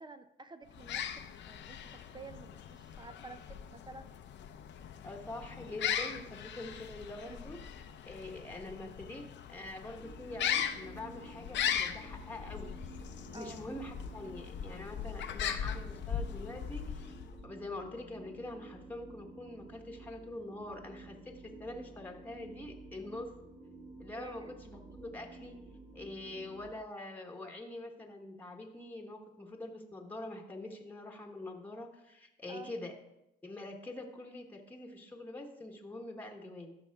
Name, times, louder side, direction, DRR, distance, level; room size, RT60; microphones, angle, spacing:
voice 1, 0.0-4.1 13.3-13.6 24.1-24.5 26.2-26.4 32.5-32.7, right 3 dB, 25° right, 10 dB, 0.5 m, -51 dB
sound 1, 0.7-17.4, left 9 dB, 65° left, 0.7 m, -39 dB
voice 2, 5.0-7.7 8.0-12.8 13.3-17.1 17.4-23.4 24.0-25.6 25.9-32.9 33.4-36.8, left 1 dB, 10° left, 2 dB, 1.2 m, -45 dB
sound 2, 10.0-26.7, right 2 dB, 50° right, 2.7 m, -52 dB
13.5 x 5.6 x 3.5 m, 0.89 s
cardioid pair, 90°, 20 cm